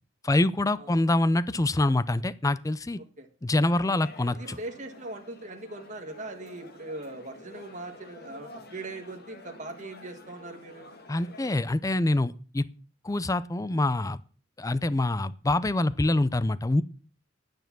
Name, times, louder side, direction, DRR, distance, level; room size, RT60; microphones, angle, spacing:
voice 1, 0.2-3.0 3.4-4.6 11.1-12.7 13.0-14.2 14.6-16.8, left 2 dB, 15° left, 17 dB, 0.5 m, -25 dB
sound 1, 3.7-11.6, left 2 dB, 55° left, 1.6 m, -49 dB
voice 2, 4.3-11.0, right 2 dB, 40° right, 4 dB, 1.7 m, -40 dB
10.5 x 9.1 x 6.0 m, 0.40 s
head